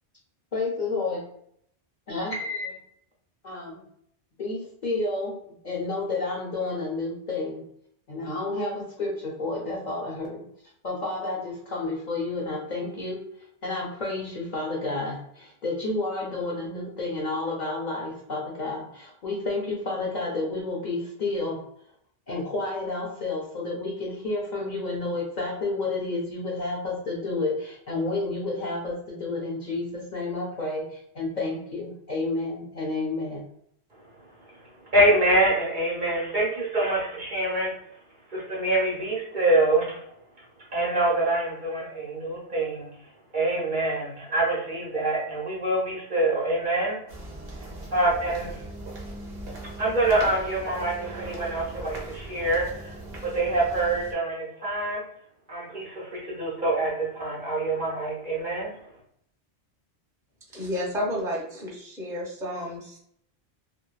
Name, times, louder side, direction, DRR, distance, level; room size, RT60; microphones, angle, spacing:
voice 1, 0.5-1.3 2.1-2.8 3.4-3.9 4.4-5.3 5.6-7.6 8.1-10.5 10.8-13.2 13.6-21.6 22.3-33.5, left 2 dB, 55° left, -3 dB, 0.6 m, -30 dB
voice 2, 34.4-37.7 38.3-40.0 40.7-47.0 47.9-48.6 49.8-55.0 55.5-58.7, right 1 dB, 50° right, -5 dB, 1.2 m, -25 dB
sound 1, 47.1-54.1, right 1 dB, 70° right, 0.9 m, -39 dB
voice 3, 60.5-63.0, equal, 5° right, -4 dB, 0.6 m, -31 dB
3.0 x 2.1 x 2.3 m, 0.70 s
omnidirectional pair, 1.1 m